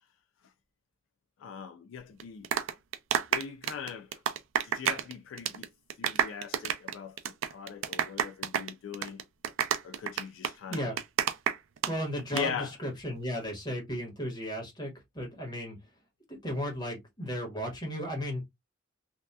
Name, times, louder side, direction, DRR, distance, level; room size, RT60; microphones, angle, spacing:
voice 1, 1.4-2.5 3.3-4.1 4.6-5.7 6.0-9.2 9.8-11.0 12.3-12.7, left 7 dB, 75° left, 0.3 m, -40 dB
sound 1, 2.2-5.1 5.4-5.7 5.9-11.9 12.2-12.4, right 8 dB, 85° right, 0.4 m, -29 dB
voice 2, 11.9-15.8 16.3-18.5, equal, 20° left, 1.2 m, -35 dB
2.7 x 2.2 x 2.2 m
head